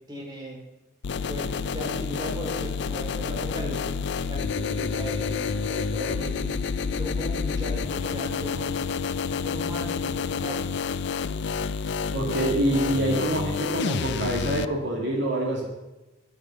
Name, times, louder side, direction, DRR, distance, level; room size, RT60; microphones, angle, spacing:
voice 1, 0.1-0.6 1.3-3.9 4.3-6.5 6.8-8.9 9.3-10.7, equal, 20° right, -1 dB, 2.7 m, -37 dB
sound 1, 1.0-14.6, left 5 dB, 60° left, 0.4 m, -29 dB
voice 2, 12.1-15.7, right 1 dB, 60° right, -1 dB, 2.2 m, -26 dB
11.5 x 8.4 x 6.0 m, 1.0 s
head